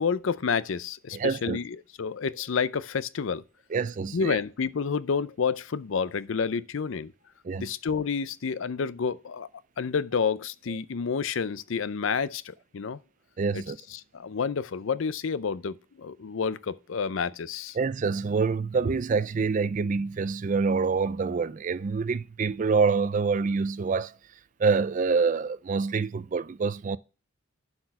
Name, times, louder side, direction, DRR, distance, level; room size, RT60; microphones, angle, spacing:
voice 1, 0.0-3.4 4.1-7.1 7.6-9.5 9.8-13.0 13.5-13.6 13.9-17.8, left 6 dB, 70° left, 0.5 m, -29 dB
voice 2, 1.1-1.6 3.7-4.4 7.4-7.7 13.4-13.8 17.7-24.2 24.6-27.0, right 4 dB, 40° right, 0.4 m, -26 dB
11.5 x 4.4 x 5.7 m
head